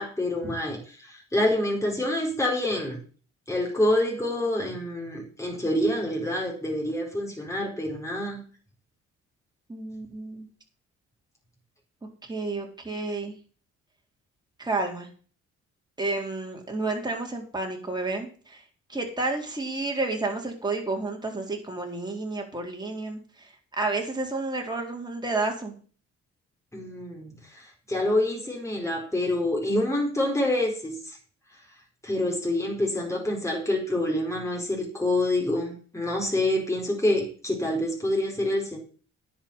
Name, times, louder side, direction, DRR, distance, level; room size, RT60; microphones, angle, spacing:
voice 1, 0.0-3.0 3.5-8.4 26.7-31.2 32.0-38.8, left 1 dB, 10° left, 0 dB, 4.5 m, -27 dB
voice 2, 9.7-10.5 12.2-13.3 14.6-15.1 16.0-18.6 18.9-25.7, right 3 dB, 15° right, 1 dB, 4.1 m, -31 dB
10.0 x 6.0 x 8.0 m, 0.40 s
cardioid pair, 90°, 30 cm